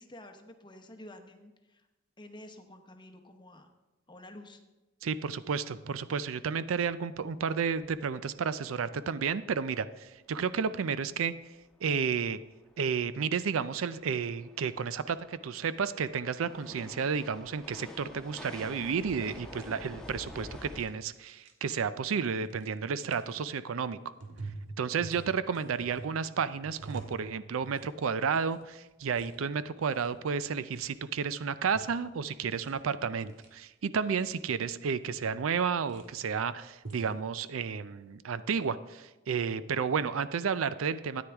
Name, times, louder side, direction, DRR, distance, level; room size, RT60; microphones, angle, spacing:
voice 1, 0.0-1.9 2.2-3.7 4.1-4.6, left 1 dB, 25° left, 5 dB, 0.9 m, -50 dB
voice 2, 5.0-11.3 11.8-12.4 12.8-24.0 24.8-41.2, right 6 dB, 85° right, 15 dB, 0.5 m, -32 dB
sound 1, 6.8-6.9 7.2-7.4 7.8-8.0 11.0-11.1 11.6-20.8, left 1 dB, 5° left, 1.2 m, -48 dB
sound 2, 19.6-19.7 20.7-20.9 21.1-21.5 22.5-22.7 23.1-23.4 24.2-27.9 28.2-28.6 28.9-29.3 29.7-30.2 30.7-30.9 31.5-32.0 32.3-32.8 33.1-33.5 34.0-34.4 35.1-35.3 35.7-36.1 36.7-37.1, right 3 dB, 65° right, 1.5 m, -46 dB
13.0 x 9.6 x 3.5 m, 1.1 s
head